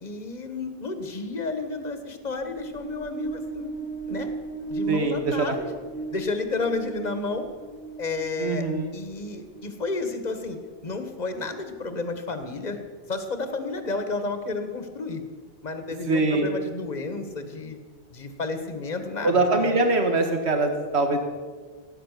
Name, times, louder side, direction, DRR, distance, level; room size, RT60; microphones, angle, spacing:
voice 1, 0.0-3.7 4.1-4.3 4.7-5.7 6.1-7.5 8.0-12.8 13.1-15.2 15.6-17.8 18.1-19.8, left 3 dB, 40° left, 7 dB, 1.5 m, -31 dB
sound 1, 2.2-9.9, right 4 dB, 10° left, 1.0 m, -36 dB
voice 2, 4.9-5.6 8.4-8.9 16.1-16.5 19.2-21.2, right 2 dB, 85° right, 5 dB, 1.7 m, -23 dB
17.5 x 9.8 x 6.7 m, 1.5 s
omnidirectional pair, 1.1 m